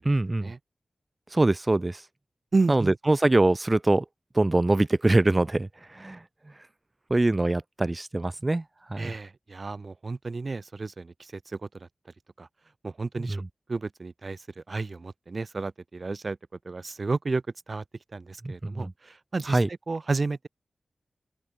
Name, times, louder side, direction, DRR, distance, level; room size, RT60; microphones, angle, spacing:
voice 1, 0.1-0.5 1.3-2.0 2.7-4.0 4.4-5.7 6.0-6.2 7.1-8.6 8.9-9.1 13.2-13.4 18.4-18.9 19.5-19.7, right 2 dB, 30° right, 0.5 m, -23 dB
voice 2, 2.5-3.0 9.0-11.9 12.4-12.5 12.8-13.4 13.7-16.4 16.6-17.8 18.1-19.6 19.9-20.5, right 3 dB, 55° right, 1.6 m, -31 dB
open air
cardioid pair, 55°, 0 cm